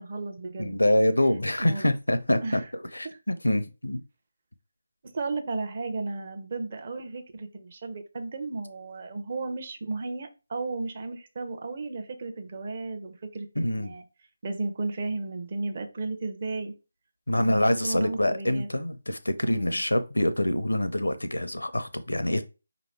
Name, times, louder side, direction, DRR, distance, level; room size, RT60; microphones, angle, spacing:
voice 1, 0.0-0.8 1.6-1.9 2.4-2.7 3.0-3.2 5.0-14.0 14.4-16.7 17.3-18.7 19.4-19.8, right 3 dB, 40° right, 0.8 m, -34 dB
voice 2, 0.6-4.0 13.6-13.9 17.3-22.4, left 1 dB, 75° left, 0.6 m, -25 dB
5.0 x 3.0 x 3.1 m
figure-of-eight pair, 155°, 0 cm